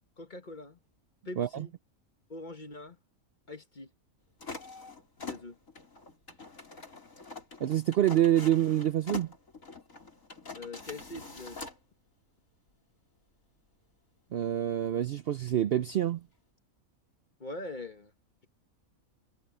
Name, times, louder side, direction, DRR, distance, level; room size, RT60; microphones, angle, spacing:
voice 1, 0.2-0.8 1.2-1.7 2.3-3.0 3.5-3.9 5.2-5.6 10.5-11.6 17.4-18.1, left 2 dB, 35° left, 1.7 m, -42 dB
sound 1, 4.4-11.8, left 4 dB, 80° left, 4.6 m, -45 dB
voice 2, 7.6-9.3 14.3-16.2, right 11 dB, 60° right, 0.7 m, -27 dB
omnidirectional pair, 1.4 m